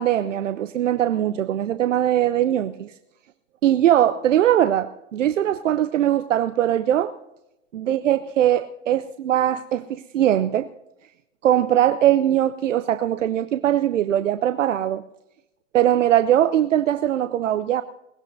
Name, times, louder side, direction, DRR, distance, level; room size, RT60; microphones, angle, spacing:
voice 1, 0.0-2.9 3.6-7.1 7.7-10.7 11.4-15.0 15.7-17.8, right 11 dB, 75° right, 12 dB, 0.7 m, -21 dB
22.0 x 19.0 x 2.7 m, 0.88 s
hypercardioid pair, 105°, 38 cm